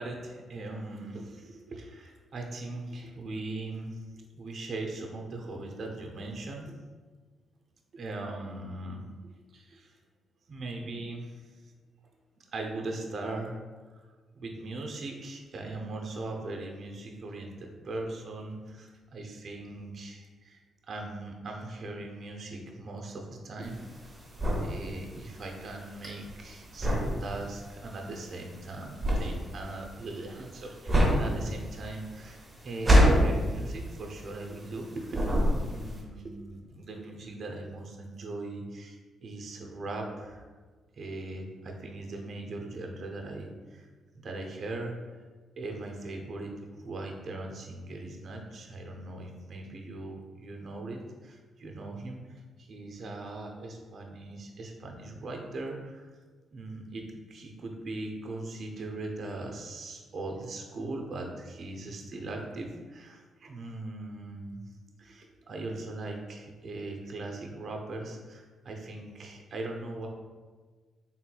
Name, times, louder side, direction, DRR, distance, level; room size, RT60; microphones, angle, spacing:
voice 1, 0.0-6.8 7.9-9.0 9.5-9.9 10.5-11.6 12.4-13.6 13.9-14.1 14.3-24.1 24.6-35.3 35.6-40.4 40.9-43.9 44.1-45.0 45.6-56.1 56.5-64.6 65.0-70.1, right 2 dB, 50° right, 2 dB, 0.6 m, -40 dB
sound 1, 23.6-34.8 35.1-36.0, equal, 15° right, 1.0 m, -26 dB
4.4 x 3.6 x 2.3 m, 1.4 s
cardioid pair, 125°, 0 cm